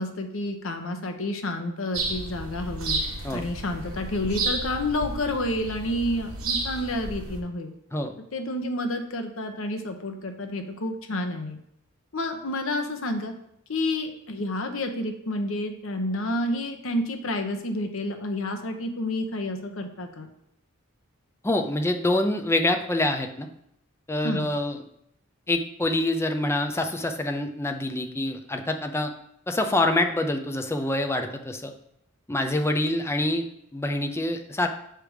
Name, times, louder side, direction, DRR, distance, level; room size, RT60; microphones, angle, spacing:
voice 1, 0.0-3.0 3.3-7.7 8.3-11.6 12.1-13.3 13.7-20.3 24.2-24.5, left 1 dB, 65° left, 5 dB, 0.9 m, -29 dB
sound 1, 1.9-7.4, right 2 dB, 80° right, 1.3 m, -32 dB
voice 2, 21.4-23.5 24.1-24.8 25.5-29.1 29.5-31.7 32.3-34.7, left 1 dB, 10° left, 5 dB, 0.5 m, -26 dB
7.5 x 3.4 x 4.9 m, 0.74 s
head